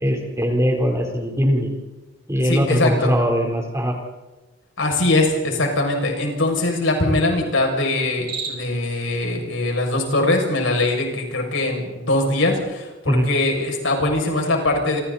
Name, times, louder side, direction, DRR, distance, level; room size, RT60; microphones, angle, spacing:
voice 1, 0.0-1.7 2.3-3.9 13.1-13.3, equal, 15° right, 2 dB, 4.0 m, -20 dB
voice 2, 2.4-3.1 4.8-15.0, left 2 dB, 85° left, 1 dB, 7.0 m, -21 dB
Cricket, 8.1-8.9, right 5 dB, 50° right, 6.4 m, -32 dB
29.5 x 26.0 x 4.3 m, 1.1 s
head